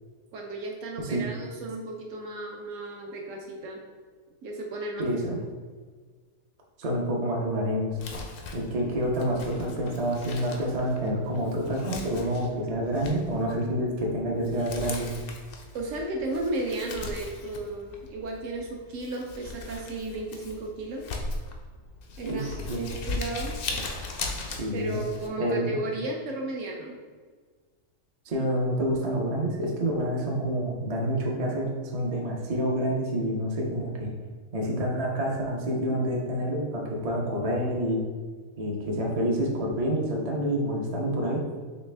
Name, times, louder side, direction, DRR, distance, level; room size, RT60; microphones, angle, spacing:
voice 1, 0.3-3.8 4.4-5.1 15.7-21.0 22.2-22.5 22.7-23.6 24.7-27.0, right 2 dB, 65° right, 1 dB, 0.9 m, -34 dB
voice 2, 5.0-5.4 6.8-8.0 8.5-15.1 22.2-22.8 24.5-25.0 25.4-25.8 28.3-34.1 34.5-38.0 38.6-41.4, equal, 45° right, -1 dB, 0.5 m, -28 dB
Crumpling crinkling, 7.9-25.3, left 3 dB, 65° left, 0.5 m, -39 dB
4.2 x 3.1 x 3.3 m, 1.5 s
omnidirectional pair, 1.5 m